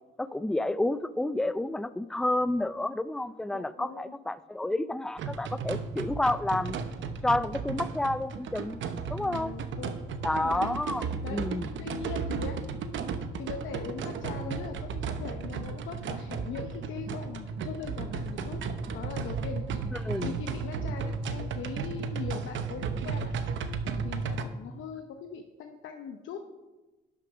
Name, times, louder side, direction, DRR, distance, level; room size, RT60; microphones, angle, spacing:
voice 1, 0.2-6.8 7.2-8.8 9.1-9.5 10.2-11.7 20.0-20.4, left 1 dB, 5° left, 15 dB, 0.4 m, -30 dB
voice 2, 3.5-4.2 9.2-10.9 11.2-11.5 11.8-12.6 13.4-18.6 18.9-19.9 20.2-23.3 24.0-26.4, left 6 dB, 75° left, 4 dB, 0.8 m, -40 dB
sound 1, 5.2-24.4, right 5 dB, 70° right, 0.9 m, -34 dB
sound 2, 17.8-22.1 22.3-22.4, right 1 dB, 20° right, 3.2 m, -51 dB
11.5 x 6.7 x 5.1 m, 1.1 s
cardioid pair, 90°, 20 cm